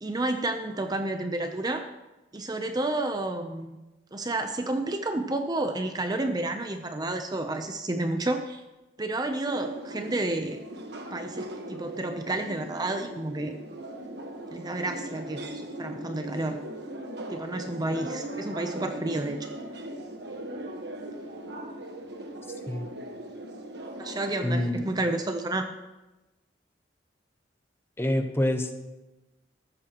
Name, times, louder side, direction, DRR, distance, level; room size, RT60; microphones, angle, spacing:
voice 1, 0.0-1.9 2.3-3.8 4.1-8.6 9.0-10.6 11.1-13.5 14.5-16.6 17.3-19.5 24.0-25.7, right 2 dB, 25° right, 7 dB, 0.6 m, -30 dB
sound 1, 9.4-24.7, right 1 dB, 70° right, 1.3 m, -39 dB
voice 2, 24.4-24.8 28.0-28.7, left 1 dB, 15° left, 6 dB, 0.9 m, -26 dB
14.5 x 12.5 x 3.0 m, 1.1 s
head